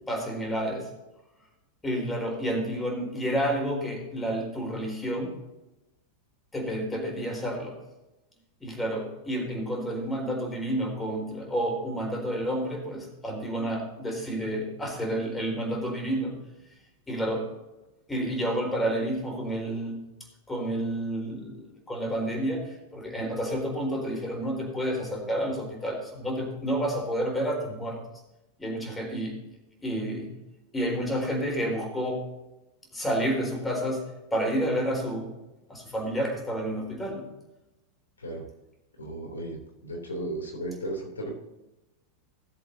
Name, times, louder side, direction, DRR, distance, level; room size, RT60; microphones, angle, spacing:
voice 1, 0.1-0.9 1.8-5.4 6.5-7.8 8.6-16.4 17.1-17.5 18.1-20.0 20.5-28.2 28.6-29.4 29.8-30.3 30.7-32.3 32.9-35.3 35.7-37.3, equal, 10° left, 1 dB, 4.2 m, -30 dB
voice 2, 39.0-41.3, right 1 dB, 85° left, 1 dB, 3.1 m, -35 dB
18.5 x 7.7 x 2.8 m, 0.98 s
hypercardioid pair, 90°, 0 cm